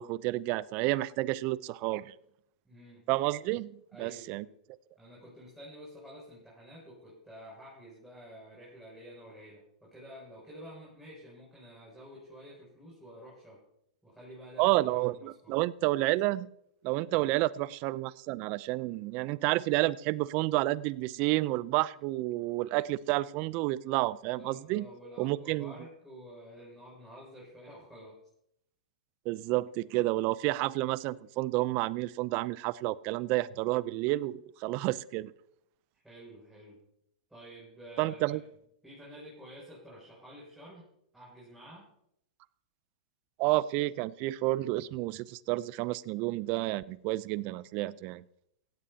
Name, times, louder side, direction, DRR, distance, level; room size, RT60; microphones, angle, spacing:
voice 1, 0.0-2.1 3.1-4.4 14.6-16.5 16.8-24.9 25.2-25.7 29.3-35.3 38.0-38.4 43.4-48.2, right 18 dB, 40° right, 20 dB, 0.5 m, -30 dB
voice 2, 2.6-3.0 3.9-4.5 5.0-13.6 14.0-15.5 17.1-17.3 24.3-28.2 36.0-36.8 37.3-38.4 38.8-40.9 41.1-41.9, equal, 5° right, -6 dB, 6.8 m, -50 dB
17.0 x 16.0 x 2.8 m, 0.75 s
hypercardioid pair, 115°, 4 cm